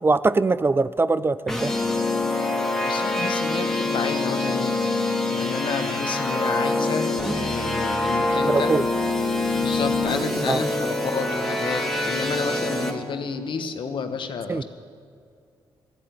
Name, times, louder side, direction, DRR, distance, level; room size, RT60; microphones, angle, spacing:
voice 1, 0.0-1.7 8.3-8.8 10.5-10.6 14.5-14.6, right 3 dB, 25° right, 16 dB, 0.4 m, -22 dB
sound 1, 1.5-12.9, left 2 dB, 5° left, 2.1 m, -25 dB
voice 2, 2.8-4.8 5.3-8.7 9.6-14.6, left 5 dB, 60° left, 8 dB, 1.3 m, -30 dB
14.0 x 8.3 x 9.5 m, 2.3 s
supercardioid pair, 60°, 9 cm